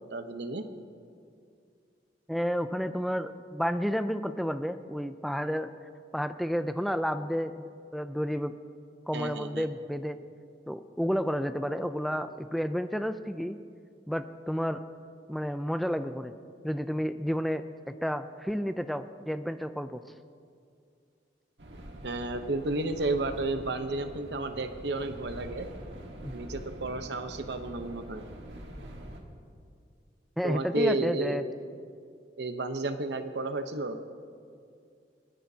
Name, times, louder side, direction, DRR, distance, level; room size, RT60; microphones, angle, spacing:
voice 1, 0.1-0.6 9.1-9.7 22.0-25.7 26.3-28.2 30.4-31.4 32.4-34.0, right 2 dB, 70° right, 8 dB, 0.9 m, -32 dB
voice 2, 2.3-5.7 6.1-7.6 7.9-8.5 9.1-10.2 10.7-13.6 14.1-14.8 15.3-16.3 16.6-20.0 26.2-26.3 30.4-31.4, equal, ahead, 10 dB, 0.3 m, -31 dB
sound 1, 21.6-29.2, right 1 dB, 90° right, 1.5 m, -44 dB
29.0 x 10.0 x 2.8 m, 2.3 s
head